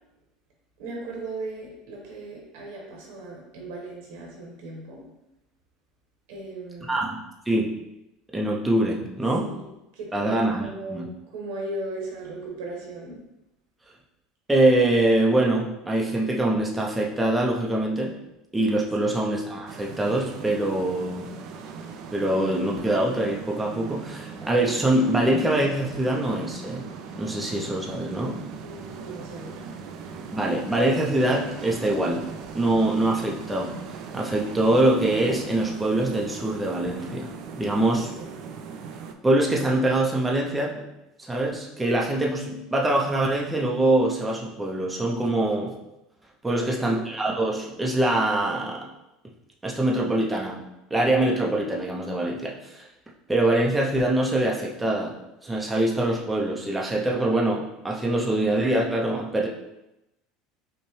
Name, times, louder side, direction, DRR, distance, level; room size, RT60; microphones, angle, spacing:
voice 1, 0.8-5.0 6.3-7.0 9.4-9.7 9.9-13.2 19.0-19.2 28.6-30.2 37.8-38.3 46.5-47.0, right 2 dB, 85° right, -2 dB, 1.3 m, -38 dB
voice 2, 6.9-7.2 7.5-7.8 8.3-9.6 10.1-11.1 14.5-18.2 18.5-21.3 22.1-26.9 27.1-28.5 30.3-32.3 32.5-38.1 39.2-40.9 41.2-45.7 46.4-48.9 49.6-50.7 50.9-52.9 53.3-55.2 55.4-59.5, right 1 dB, 10° right, -2 dB, 0.5 m, -24 dB
sound 1, 19.7-39.1, right 6 dB, 60° right, 0.4 m, -40 dB
5.4 x 2.1 x 3.1 m, 0.92 s
supercardioid pair, 130°, 0 cm